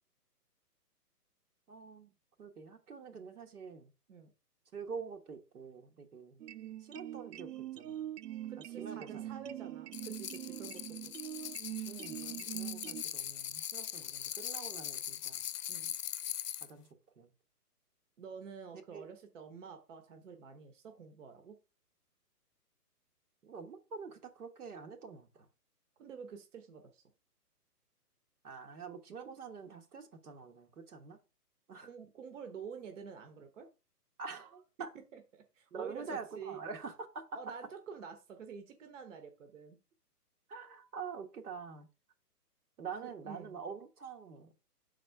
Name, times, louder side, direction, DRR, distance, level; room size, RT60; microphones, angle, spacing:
voice 1, 1.7-3.9 4.7-6.4 6.8-8.1 8.8-9.3 11.8-15.4 16.6-16.9 17.2-17.3 18.9-19.1 23.4-25.5 28.4-31.2 31.7-31.9 34.2-34.9 35.7-37.3 40.5-41.9 42.8-44.5, right 5 dB, 65° right, 1.4 m, -46 dB
sound 1, 6.4-13.0, right 13 dB, 80° right, 0.6 m, -43 dB
voice 2, 8.5-11.1 15.7-15.9 18.2-21.6 26.0-27.0 31.8-33.7 35.1-36.6 37.3-39.8 43.0-43.6, right 6 dB, 50° right, 1.3 m, -48 dB
sound 2, 9.9-16.7, left 10 dB, 75° left, 0.7 m, -41 dB
6.1 x 4.3 x 4.6 m
hypercardioid pair, 155°, 48 cm